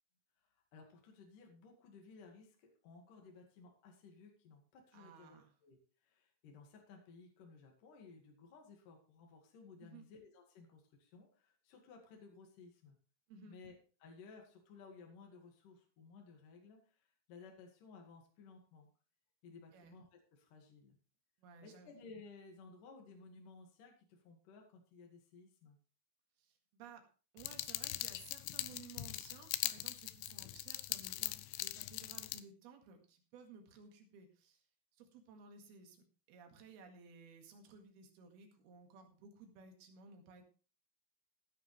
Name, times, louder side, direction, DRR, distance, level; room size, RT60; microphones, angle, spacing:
voice 1, 0.5-13.0 13.5-18.9 19.4-21.0 21.6-25.8, left 4 dB, 55° left, 1 dB, 2.9 m, -58 dB
voice 2, 4.9-5.5 9.8-10.0 13.3-13.6 19.7-19.9 21.4-21.9 26.4-27.0 27.3-34.6 35.0-40.4, right 5 dB, 60° right, 4 dB, 3.4 m, -57 dB
sound 1, 27.4-32.4, left 16 dB, 85° left, 2.5 m, -41 dB
15.5 x 10.5 x 3.3 m, 0.35 s
omnidirectional pair, 5.7 m